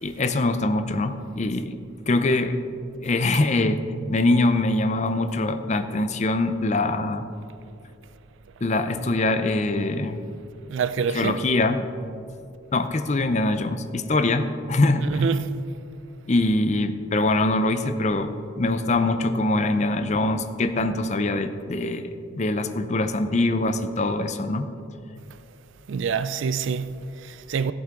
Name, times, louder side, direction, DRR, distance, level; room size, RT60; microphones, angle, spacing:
voice 1, 0.0-1.7 2.1-2.6 3.0-3.8 4.1-7.3 8.6-10.2 11.1-11.9 12.7-15.2 16.3-24.7, left 2 dB, 35° left, 0.5 m, -23 dB
voice 2, 10.7-11.4 15.1-15.6 25.9-27.7, right 6 dB, 70° right, 0.4 m, -26 dB
14.5 x 7.9 x 3.8 m
head